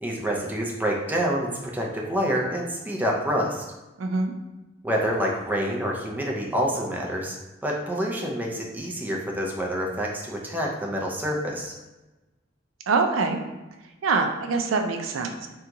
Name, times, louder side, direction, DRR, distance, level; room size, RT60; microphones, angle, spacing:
voice 1, 0.0-3.6 4.8-7.4 7.6-11.7, equal, 10° right, -1 dB, 0.4 m, -27 dB
voice 2, 4.0-4.3 12.9-13.4 14.0-15.5, right 4 dB, 80° right, 5 dB, 0.4 m, -24 dB
2.8 x 2.3 x 3.7 m, 1.1 s
head